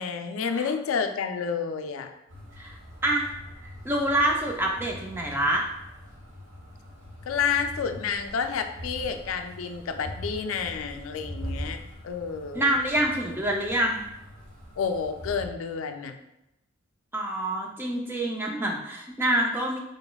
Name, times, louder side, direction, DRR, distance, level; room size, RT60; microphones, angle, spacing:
voice 1, 0.0-2.1 7.3-12.7 14.8-16.2, left 6 dB, 85° left, 7 dB, 0.4 m, -30 dB
sound 1, 2.3-15.5, equal, 75° right, 1.1 m, -42 dB
voice 2, 3.8-5.6 12.5-14.0 17.1-19.8, right 1 dB, 10° right, 0 dB, 0.4 m, -26 dB
3.9 x 3.3 x 2.2 m, 0.87 s
head